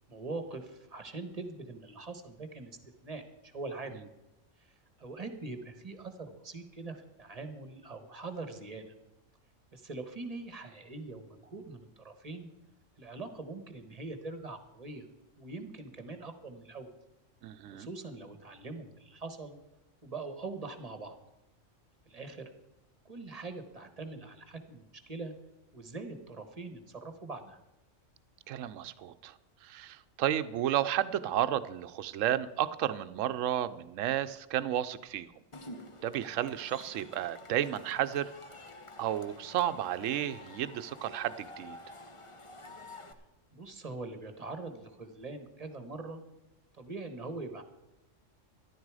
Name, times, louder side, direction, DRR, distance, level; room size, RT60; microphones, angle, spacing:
voice 1, 0.1-2.7 3.0-4.0 4.6-8.9 9.7-12.5 13.0-15.1 15.4-16.9 17.7-19.6 20.0-21.2 22.1-22.4 23.0-25.3 25.7-27.6 43.5-46.2 46.7-47.6, right 3 dB, 30° right, 8 dB, 1.3 m, -43 dB
voice 2, 17.4-17.9 28.5-29.3 29.6-35.3 36.0-38.3 39.0-41.8, right 11 dB, 80° right, 13 dB, 1.0 m, -32 dB
Cheering / Crowd, 35.5-43.1, left 2 dB, 25° left, 0.9 m, -50 dB
13.5 x 11.5 x 4.8 m, 0.96 s
omnidirectional pair, 1.3 m